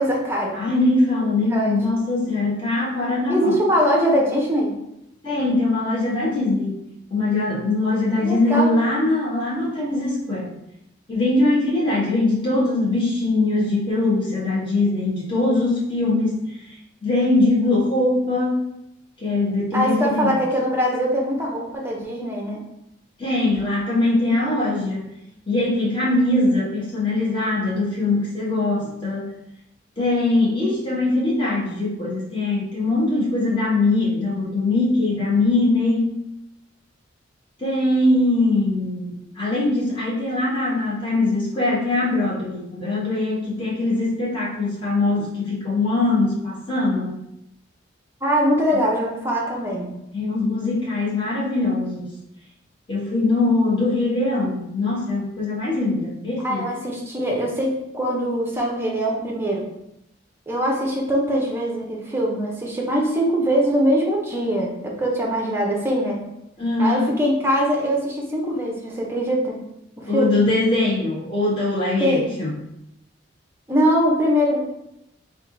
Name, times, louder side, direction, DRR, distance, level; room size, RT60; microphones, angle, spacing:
voice 1, 0.0-0.6 1.5-1.7 3.3-4.7 8.2-8.8 19.7-22.6 48.2-49.9 56.4-59.7 60.5-66.2 66.8-69.6 70.0-70.4 72.0-72.3 73.7-74.6, equal, 10° right, -2 dB, 0.6 m, -22 dB
voice 2, 0.5-3.5 5.2-6.8 7.1-10.5 11.1-18.7 19.2-20.4 23.2-25.1 25.5-29.3 30.0-36.2 37.6-47.2 50.1-52.2 52.9-56.7 66.6-67.1 70.1-72.5, left 2 dB, 25° left, -7 dB, 1.2 m, -22 dB
3.5 x 2.5 x 3.9 m, 0.83 s
head